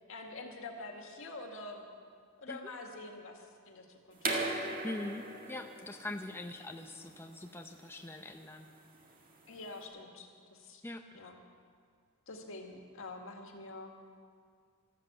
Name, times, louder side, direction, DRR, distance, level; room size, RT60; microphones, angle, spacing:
voice 1, 0.1-1.9 2.4-4.7 9.5-10.8 11.1-11.4 12.3-13.9, left 2 dB, 70° left, 3 dB, 1.9 m, -46 dB
sound 1, 4.2-9.8, right 2 dB, 40° right, 1.9 m, -39 dB
voice 2, 4.8-8.7 10.8-11.0, left 2 dB, 10° left, 4 dB, 0.6 m, -42 dB
13.0 x 12.5 x 8.0 m, 2.1 s
head